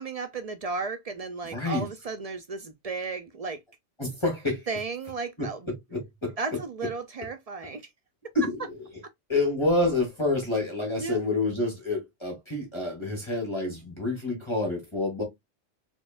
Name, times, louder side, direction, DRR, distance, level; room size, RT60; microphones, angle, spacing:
voice 1, 0.0-3.6 4.7-5.6 6.4-7.8 11.0-11.2, right 4 dB, 60° right, 0.4 m, -34 dB
voice 2, 1.4-1.9 4.0-4.7 5.4-6.6 8.3-9.0 9.3-15.2, left 2 dB, 25° left, 1.4 m, -28 dB
4.1 x 3.2 x 2.4 m
omnidirectional pair, 1.3 m